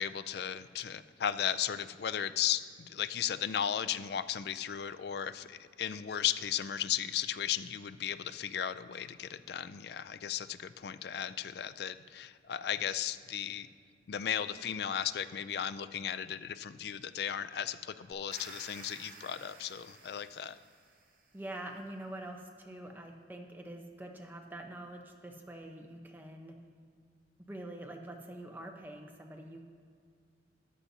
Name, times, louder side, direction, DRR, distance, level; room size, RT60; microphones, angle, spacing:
voice 1, 0.0-13.7 14.1-20.6, left 9 dB, 55° left, 13 dB, 0.3 m, -35 dB
sound 1, 18.1-21.3, right 3 dB, 45° right, 0.9 m, -53 dB
voice 2, 21.3-26.5 27.4-29.6, right 1 dB, 10° right, 2 dB, 0.8 m, -45 dB
13.5 x 9.6 x 2.8 m, 2.2 s
head